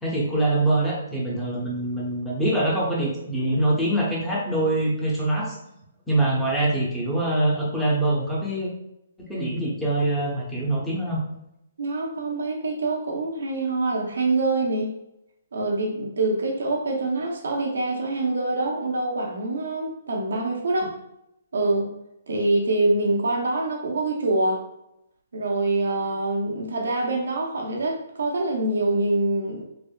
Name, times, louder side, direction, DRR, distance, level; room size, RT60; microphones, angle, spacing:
voice 1, 0.0-5.5 6.1-8.7 9.3-11.2, right 1 dB, 5° left, -6 dB, 0.7 m, -24 dB
voice 2, 11.8-14.9 15.5-21.0 21.5-21.9 22.3-24.6 25.3-29.6, right 2 dB, 80° right, 0 dB, 0.6 m, -25 dB
3.3 x 2.1 x 2.2 m, 0.82 s
hypercardioid pair, 150°, 0 cm